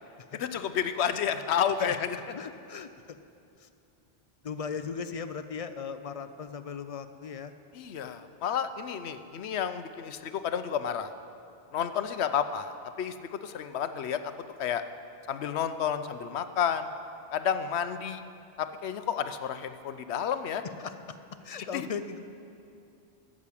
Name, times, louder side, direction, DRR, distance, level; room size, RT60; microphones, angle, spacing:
voice 1, 0.3-2.2 7.7-11.1 11.7-12.7 13.0-14.3 14.6-14.8 15.3-16.9 17.3-18.2 18.6-20.6 21.6-21.9, left 8 dB, 90° left, 10 dB, 0.9 m, -31 dB
voice 2, 2.3-2.9 3.6-3.7 4.4-7.5 20.8-21.2 21.4-22.2, left 6 dB, 50° left, 11 dB, 0.5 m, -37 dB
13.0 x 7.4 x 8.4 m, 2.6 s
omnidirectional pair, 1.1 m